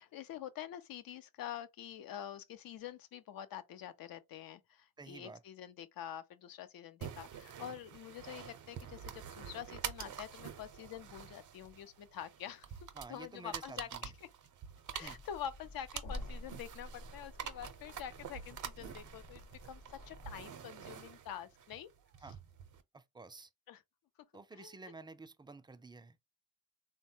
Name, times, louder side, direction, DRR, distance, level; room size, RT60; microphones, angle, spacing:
voice 1, 0.0-14.3 14.9-21.9 23.7-23.8 24.5-24.9, left 10 dB, 70° left, 0.6 m, -47 dB
voice 2, 5.0-5.4 13.0-14.1 15.0-15.2 22.2-22.4 22.9-23.5 24.3-26.2, right 3 dB, 15° right, 0.4 m, -51 dB
sound 1, 7.0-22.8, right 8 dB, 55° right, 0.6 m, -47 dB
sound 2, 15.0-20.5, left 1 dB, 85° left, 1.0 m, -50 dB
3.2 x 2.2 x 2.7 m
supercardioid pair, 55°, 37 cm